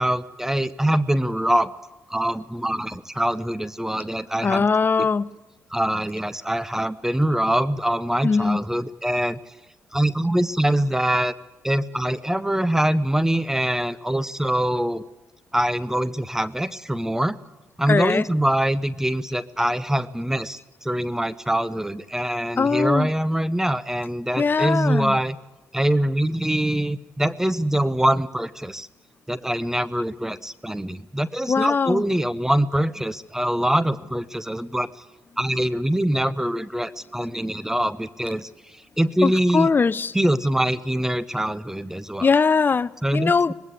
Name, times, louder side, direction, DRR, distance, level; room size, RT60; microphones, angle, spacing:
voice 1, 0.0-1.7 2.1-4.7 5.0-5.1 5.7-9.4 9.9-11.3 11.6-15.0 15.5-17.4 17.8-25.4 25.7-28.9 29.3-34.9 35.4-38.5 39.0-39.7 40.1-42.3 43.0-43.3, right 1 dB, 10° right, 0.8 m, -24 dB
voice 2, 4.4-5.3 8.2-8.6 17.9-18.3 22.6-23.1 24.4-25.2 31.5-32.0 39.2-40.1 42.2-43.5, left 5 dB, 35° left, 0.6 m, -21 dB
20.0 x 16.0 x 8.3 m
supercardioid pair, 60°, 6 cm